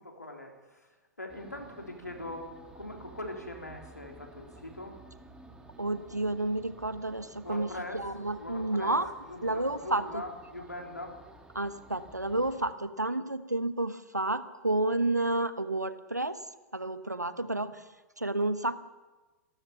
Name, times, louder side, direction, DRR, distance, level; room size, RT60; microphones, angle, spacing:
voice 1, 0.0-2.5 2.7-5.0 7.4-8.1 8.4-9.0 9.3-11.2 17.4-17.7, left 1 dB, 85° left, 2 dB, 3.8 m, -42 dB
sound 1, 1.3-12.7, right 2 dB, 10° right, 2.3 m, -53 dB
voice 2, 5.8-9.1 9.4-10.2 11.5-16.4 16.7-17.8 18.2-18.8, right 2 dB, 90° right, 13 dB, 1.2 m, -30 dB
29.5 x 13.0 x 7.0 m, 1.2 s
figure-of-eight pair, 95°, 9 cm